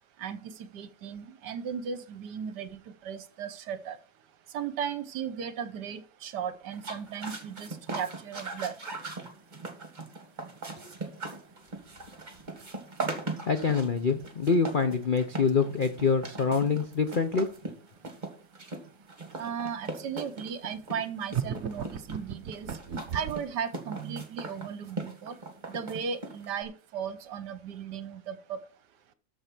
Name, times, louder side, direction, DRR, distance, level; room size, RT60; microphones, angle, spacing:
voice 1, 0.2-4.0 4.5-8.7 19.4-22.7 23.1-25.4 25.7-28.6, right 7 dB, 65° right, 14 dB, 1.4 m, -36 dB
sound 1, 6.7-26.6, right 3 dB, 25° right, 1.8 m, -39 dB
voice 2, 13.5-17.5, left 5 dB, 90° left, 8 dB, 0.4 m, -26 dB
sound 2, 21.3-23.5, right 8 dB, 50° right, 0.9 m, -34 dB
13.5 x 4.8 x 6.0 m, 0.39 s
omnidirectional pair, 2.1 m